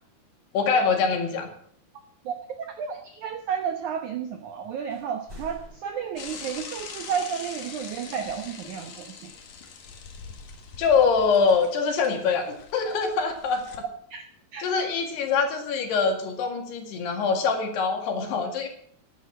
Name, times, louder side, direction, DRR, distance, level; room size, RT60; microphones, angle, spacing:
voice 1, 0.5-1.5 10.8-13.7 14.6-18.7, left 5 dB, 75° left, 4 dB, 4.1 m, -24 dB
voice 2, 2.3-9.3 14.1-14.2 14.5-14.7, right 7 dB, 75° right, 6 dB, 1.8 m, -32 dB
sound 1, 4.9-6.1, left 1 dB, 15° right, 5.2 m, -45 dB
Bicycle / Mechanisms, 6.2-13.8, left 6 dB, 55° left, 2.4 m, -43 dB
11.0 x 11.0 x 7.8 m, 0.62 s
omnidirectional pair, 4.9 m